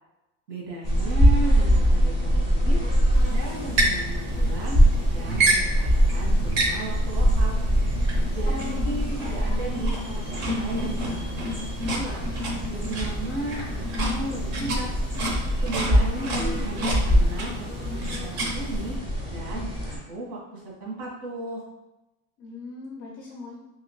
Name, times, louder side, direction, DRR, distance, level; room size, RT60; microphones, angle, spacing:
voice 1, 0.5-2.8 3.3-4.8 5.1-7.6 8.3-12.3 12.7-14.9 15.6-17.8 18.2-18.9 19.3-21.6, right 2 dB, 75° right, -4 dB, 1.4 m, -35 dB
sound 1, 0.8-20.0, equal, 15° right, 0.6 m, -24 dB
sound 2, 3.1-19.0, right 1 dB, 55° right, 0.7 m, -30 dB
voice 2, 8.5-9.1 9.5-10.5 22.4-23.6, left 3 dB, 35° left, -3 dB, 0.4 m, -39 dB
2.9 x 2.8 x 3.0 m, 0.99 s
cardioid pair, 165°, 36 cm